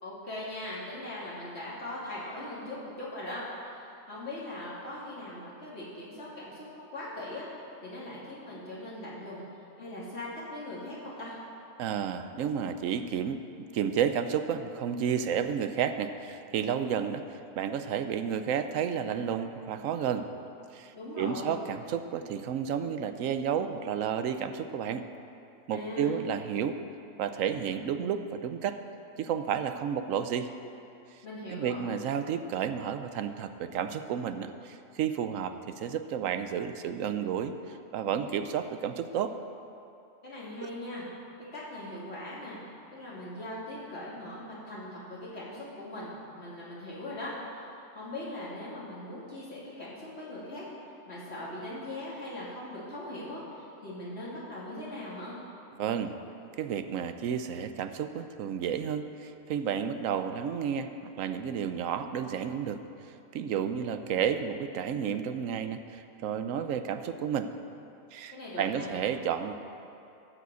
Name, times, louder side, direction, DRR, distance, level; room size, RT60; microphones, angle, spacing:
voice 1, 0.0-3.4 3.7-7.5 7.8-9.4 9.8-11.4 20.9-21.6 25.7-26.1 31.2-31.9 40.2-41.1 41.5-42.6 42.9-50.6 51.1-53.4 53.8-55.4 68.3-68.9, left 1 dB, 55° left, -8 dB, 3.1 m, -40 dB
voice 2, 11.8-20.3 20.7-25.0 25.7-26.8 27.2-28.8 29.2-30.5 31.5-39.4 40.6-40.7 55.8-56.2 56.6-60.9 61.2-62.8 63.0-67.5 68.1-69.5, right 8 dB, 85° right, 9 dB, 1.0 m, -31 dB
13.5 x 5.1 x 8.1 m, 2.8 s
omnidirectional pair, 1.3 m